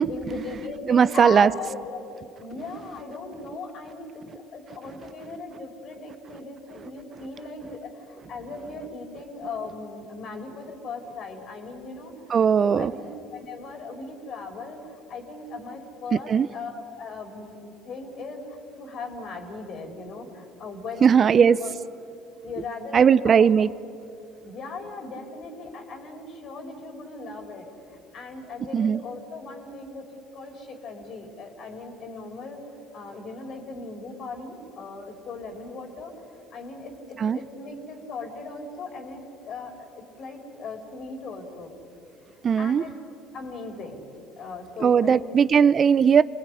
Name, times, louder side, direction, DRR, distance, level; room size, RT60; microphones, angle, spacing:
voice 1, 0.1-2.0 2.4-4.2 4.5-12.1 12.6-13.1 13.3-21.8 22.4-23.5 24.4-32.6 32.9-36.1 36.5-41.7 42.6-42.9 43.3-44.0 44.3-45.3, left 3 dB, 55° left, 4 dB, 4.7 m, -38 dB
voice 2, 0.9-1.5 12.3-12.9 16.1-16.5 21.0-21.6 22.9-23.7 28.7-29.0 37.2-37.4 42.4-42.8 44.8-46.2, right 7 dB, 40° right, 17 dB, 0.8 m, -18 dB
28.5 x 20.0 x 10.0 m, 2.6 s
hypercardioid pair, 65°, 0 cm